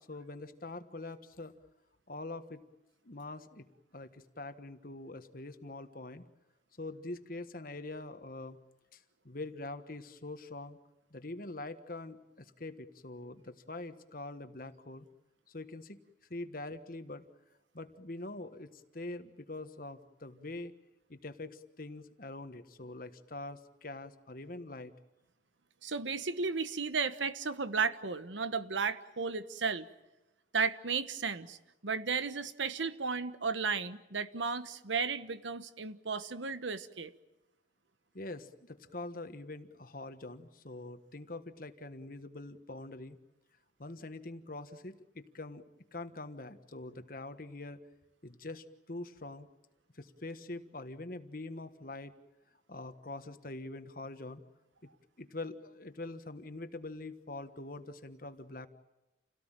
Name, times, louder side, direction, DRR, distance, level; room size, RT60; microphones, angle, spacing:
voice 1, 0.0-1.6 2.1-2.6 3.0-3.7 3.9-6.2 6.8-8.6 8.9-10.8 11.1-15.1 15.5-16.0 16.3-17.2 17.7-20.7 21.1-24.9 38.1-43.2 43.8-45.6 45.9-47.8 48.2-49.5 49.9-52.1 52.7-54.4 54.8-54.9 55.2-58.7, left 2 dB, 50° left, 10 dB, 1.4 m, -44 dB
voice 2, 25.8-29.9 30.5-31.6 31.8-37.1, right 5 dB, 85° right, 12 dB, 1.2 m, -34 dB
29.0 x 17.5 x 9.1 m, 0.98 s
head